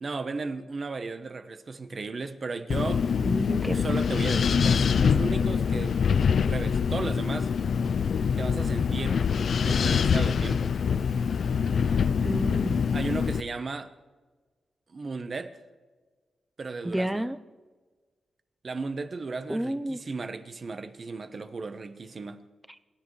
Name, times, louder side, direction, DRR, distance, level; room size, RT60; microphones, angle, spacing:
voice 1, 0.0-3.1 3.7-6.0 6.5-7.5 8.4-9.3 9.6-10.7 12.9-13.9 14.9-15.6 16.6-17.3 18.6-22.4, right 3 dB, 35° right, 1.0 m, -35 dB
Wind, 2.7-13.4, left 6 dB, 50° left, 0.4 m, -25 dB
voice 2, 3.2-3.8 12.2-12.8 16.8-17.4 19.5-20.0, right 1 dB, 5° right, 0.5 m, -30 dB
29.0 x 13.0 x 3.2 m
wide cardioid pair, 170°, 0 cm